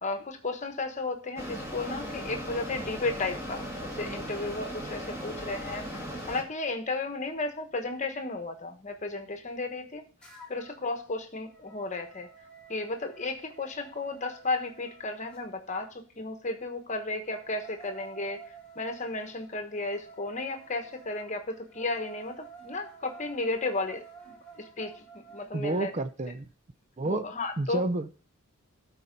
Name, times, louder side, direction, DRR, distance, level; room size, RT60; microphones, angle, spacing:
voice 1, 0.0-10.0 10.5-12.3 12.7-18.4 18.7-25.9 27.1-27.9, left 3 dB, 35° left, 6 dB, 1.1 m, -34 dB
Mechanisms, 1.4-6.4, equal, 15° right, 1.9 m, -37 dB
sound 1, 10.2-10.8 11.2-15.4 16.9-25.5, right 5 dB, 5° left, 2.2 m, -51 dB
voice 2, 25.5-26.5 27.0-27.2 27.6-28.2, right 2 dB, 30° right, 12 dB, 0.5 m, -30 dB
12.5 x 4.2 x 5.2 m, 0.39 s
head